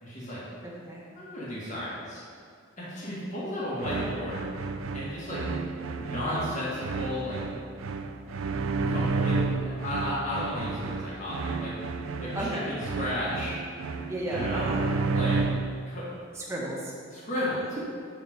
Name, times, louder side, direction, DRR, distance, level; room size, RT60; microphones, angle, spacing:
voice 1, 0.0-0.4 1.2-2.2 2.8-4.4 4.9-5.4 6.0-7.4 8.9-11.7 12.2-13.6 14.3-14.8 15.1-15.4 15.9-16.1 17.1-17.8, left 1 dB, 35° left, -8 dB, 1.8 m, -33 dB
voice 2, 0.6-1.1 12.3-12.7 14.1-14.9 16.3-16.9 17.3-17.4, right 1 dB, 15° right, -4 dB, 1.2 m, -33 dB
sound 1, 3.8-15.8, right 4 dB, 80° right, 0.4 m, -31 dB
7.1 x 4.6 x 5.1 m, 2.3 s
head